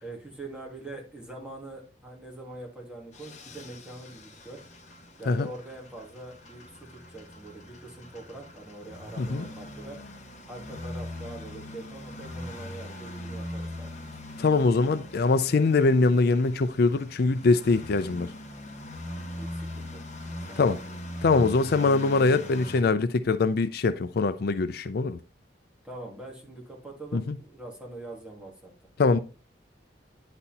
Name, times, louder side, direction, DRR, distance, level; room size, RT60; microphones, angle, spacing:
voice 1, 0.0-4.6 5.2-10.0 10.5-13.9 19.4-20.8 25.8-28.7, right 2 dB, 5° right, 2.3 m, -43 dB
sound 1, 3.1-22.8, left 1 dB, 40° left, 1.4 m, -41 dB
voice 2, 14.4-18.3 20.6-20.8 21.2-25.2 27.1-27.3 29.0-29.2, left 3 dB, 60° left, 0.4 m, -23 dB
9.9 x 4.2 x 4.0 m
head